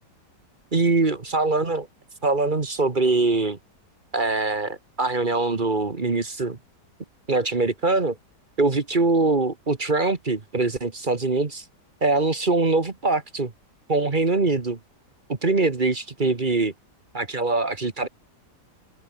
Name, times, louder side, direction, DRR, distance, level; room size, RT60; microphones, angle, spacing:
voice 1, 0.7-1.9 2.2-3.6 4.1-6.6 7.3-8.2 8.6-11.6 12.0-13.5 13.9-14.8 15.3-16.7 17.1-18.1, right 3 dB, 30° right, 1.7 m, -23 dB
open air
omnidirectional pair, 1.8 m